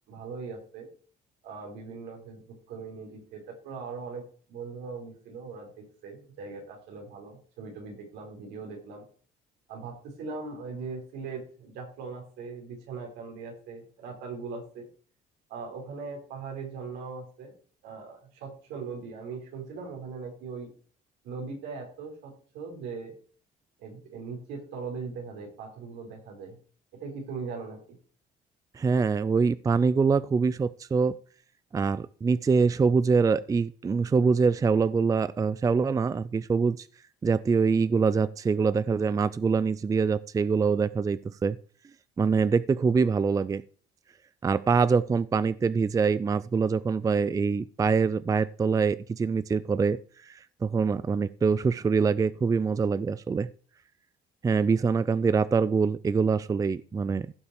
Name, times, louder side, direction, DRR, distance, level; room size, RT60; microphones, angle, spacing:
voice 1, 0.1-0.9 1.4-4.2 4.5-9.0 9.7-14.9 15.5-17.5 17.8-20.7 21.2-23.1 23.8-26.6 27.0-28.0, right 4 dB, 85° right, 1 dB, 4.5 m, -40 dB
voice 2, 28.7-31.2 31.7-36.9 37.2-41.6 42.2-43.6 44.4-53.5 54.4-57.3, right 5 dB, 20° right, 17 dB, 0.4 m, -24 dB
16.0 x 5.7 x 4.8 m, 0.43 s
cardioid pair, 110°, 17 cm